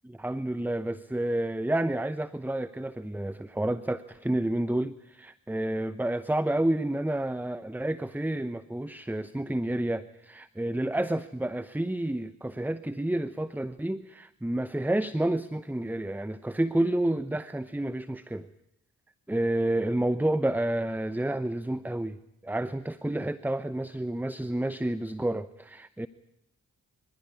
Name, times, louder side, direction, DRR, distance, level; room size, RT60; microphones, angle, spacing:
voice 1, 0.0-18.5 19.3-26.1, right 1 dB, 5° right, 14 dB, 0.8 m, -30 dB
25.0 x 15.0 x 9.9 m, 0.81 s
supercardioid pair, 40°, 39 cm